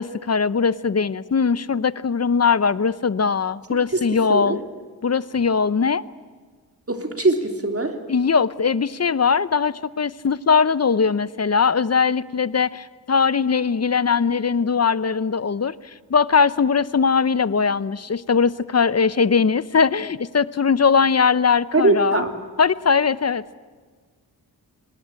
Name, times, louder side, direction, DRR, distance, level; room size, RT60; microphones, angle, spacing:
voice 1, 0.0-4.6 5.0-6.0 8.1-22.2 22.6-23.6, left 5 dB, 40° left, 17 dB, 0.7 m, -20 dB
voice 2, 6.9-8.0 21.7-22.3, right 2 dB, 40° right, 5 dB, 3.3 m, -21 dB
24.0 x 20.0 x 8.9 m, 1.5 s
wide cardioid pair, 80°, 38 cm